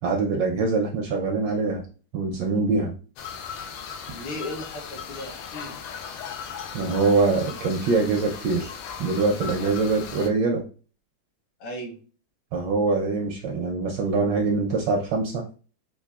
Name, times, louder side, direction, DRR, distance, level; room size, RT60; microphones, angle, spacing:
voice 1, 0.0-1.8 2.1-2.9 6.7-8.7 9.0-10.6 12.5-15.4, right 3 dB, 75° right, 2 dB, 1.0 m, -24 dB
sound 1, 3.2-10.3, left 7 dB, 85° left, 1.5 m, -37 dB
voice 2, 4.1-5.8 9.6-9.7 11.6-12.0, left 1 dB, 70° left, 0 dB, 1.9 m, -36 dB
4.7 x 2.6 x 2.3 m, 0.37 s
omnidirectional pair, 2.4 m